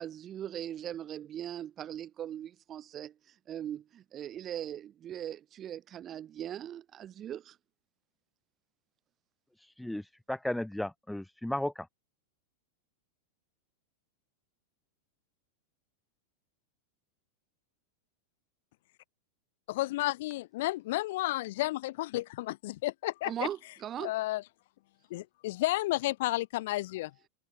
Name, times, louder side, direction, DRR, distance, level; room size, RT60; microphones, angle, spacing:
voice 1, 0.0-3.1 3.5-7.5 23.2-24.1, right 10 dB, 30° right, 4.4 m, -39 dB
voice 2, 9.6-11.9, left 1 dB, 5° left, 0.9 m, -35 dB
voice 3, 19.7-23.5 24.0-24.4 25.1-27.1, left 18 dB, 55° left, 0.9 m, -32 dB
figure-of-eight pair, 90°, 0 cm